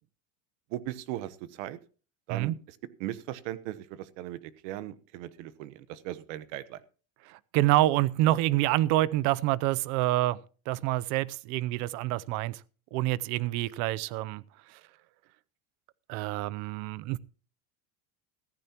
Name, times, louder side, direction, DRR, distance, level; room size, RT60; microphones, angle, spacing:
voice 1, 0.7-1.8 2.3-6.8, right 13 dB, 65° right, 1.1 m, -38 dB
voice 2, 7.3-10.4 10.7-12.6 12.9-14.4 14.7-14.8 16.1-17.2, right 16 dB, 50° right, 0.6 m, -27 dB
15.0 x 14.5 x 2.9 m
cardioid pair, 160°, 38 cm